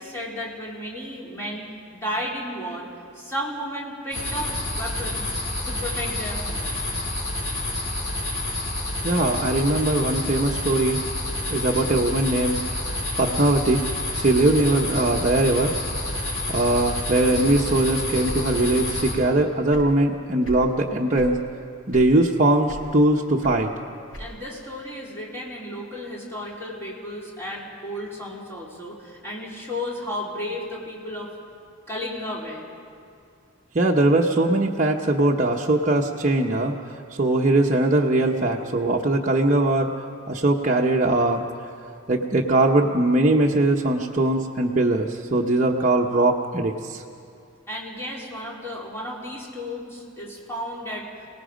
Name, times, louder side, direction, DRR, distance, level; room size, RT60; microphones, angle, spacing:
voice 1, 0.0-5.3 5.6-6.9 24.2-31.3 31.9-32.7 47.7-51.1, equal, 10° left, -5 dB, 4.0 m, -33 dB
sound 1, 4.1-19.1, left 1 dB, 70° left, 4.8 m, -29 dB
voice 2, 9.0-11.0 11.5-12.9 13.2-13.8 14.1-15.8 16.1-21.4 21.9-23.7 33.7-36.7 37.1-39.9 40.3-41.4 42.1-47.0, right 2 dB, 35° right, -2 dB, 0.9 m, -21 dB
sound 2, 18.2-19.2 19.5-20.7 21.1-21.4 21.9-22.3 22.7-24.6, equal, 90° left, 7.1 m, -38 dB
28.5 x 18.5 x 5.1 m, 2.4 s
head